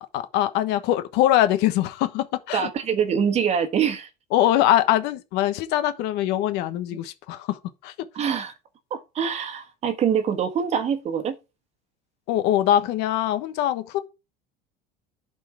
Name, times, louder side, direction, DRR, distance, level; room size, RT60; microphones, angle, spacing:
voice 1, 0.1-2.7 4.3-7.9 12.3-14.0, left 12 dB, 65° left, 1.2 m, -22 dB
voice 2, 2.5-4.1 8.1-8.5 8.9-11.3, right 7 dB, 35° right, 1.3 m, -24 dB
11.0 x 4.5 x 4.6 m
cardioid pair, 140°, 19 cm